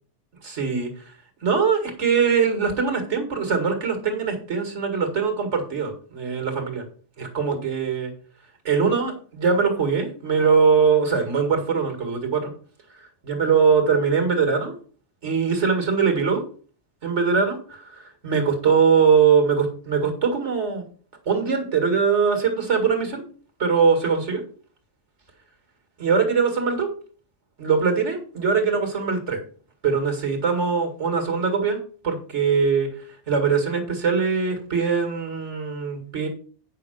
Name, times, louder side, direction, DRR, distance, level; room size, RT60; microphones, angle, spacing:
voice 1, 0.4-1.0 1.4-6.8 7.2-8.1 8.6-12.5 13.0-14.8 15.2-16.4 17.0-20.8 21.3-23.2 23.6-24.4 26.0-26.9 27.6-29.4 29.8-31.8 32.0-36.3, right 5 dB, 85° right, 5 dB, 2.4 m, -22 dB
8.9 x 5.6 x 5.2 m, 0.43 s
omnidirectional pair, 1.2 m